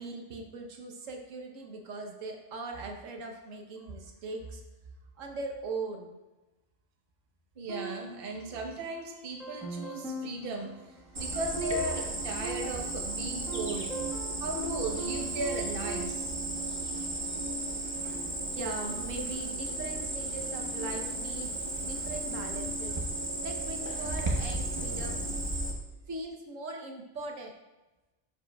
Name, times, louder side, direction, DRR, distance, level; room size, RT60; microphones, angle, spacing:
voice 1, 0.0-4.6 5.2-6.2 18.6-21.5 21.8-22.9 23.4-25.2 26.1-27.5, right 3 dB, 80° right, 2 dB, 1.3 m, -40 dB
voice 2, 7.6-13.9 14.4-16.2, right 2 dB, 50° right, 2 dB, 1.1 m, -36 dB
sound 1, 7.7-8.9 9.4-16.0, right 3 dB, ahead, 1.2 m, -41 dB
Cricket, 11.1-25.7, right 2 dB, 25° right, 0.9 m, -34 dB
12.0 x 4.9 x 2.3 m, 1.1 s
omnidirectional pair, 1.3 m